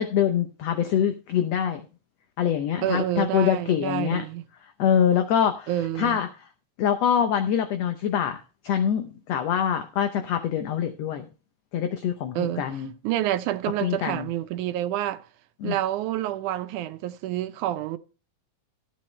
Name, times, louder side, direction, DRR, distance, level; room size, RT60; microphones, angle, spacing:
voice 1, 0.0-1.8 2.4-4.2 4.8-5.7 6.0-6.3 6.8-8.4 8.6-11.2 11.7-12.9 13.8-14.3 15.6-15.8, left 9 dB, 70° left, 1.7 m, -24 dB
voice 2, 2.8-4.4 5.7-6.2 12.4-15.3 15.6-18.0, right 13 dB, 80° right, 2.1 m, -28 dB
14.0 x 8.4 x 3.2 m
omnidirectional pair, 3.6 m